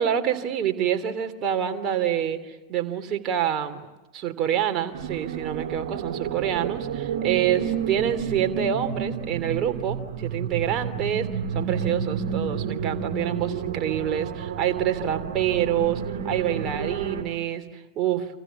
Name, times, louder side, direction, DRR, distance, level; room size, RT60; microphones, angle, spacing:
voice 1, 0.0-3.9 4.1-11.3 11.5-18.3, right 10 dB, 35° right, 6 dB, 3.0 m, -27 dB
sound 1, 4.9-17.2, right 7 dB, 55° right, 3.1 m, -30 dB
29.5 x 26.5 x 7.2 m, 1.1 s
figure-of-eight pair, 90°, 0 cm